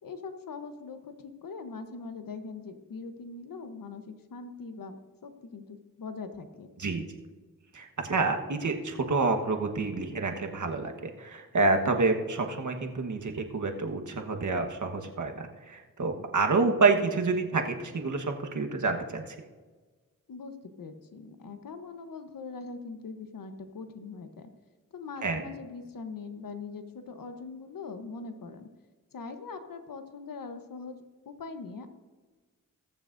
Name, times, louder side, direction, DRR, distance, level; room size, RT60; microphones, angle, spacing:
voice 1, 0.0-5.0 5.2-6.7 20.3-24.5 24.9-28.7 29.1-31.0 31.3-31.9, left 4 dB, 75° left, 8 dB, 1.0 m, -42 dB
voice 2, 7.7-19.3 25.2-25.4, right 3 dB, 60° right, 4 dB, 1.3 m, -28 dB
21.0 x 7.0 x 2.6 m, 1.4 s
cardioid pair, 50°, 34 cm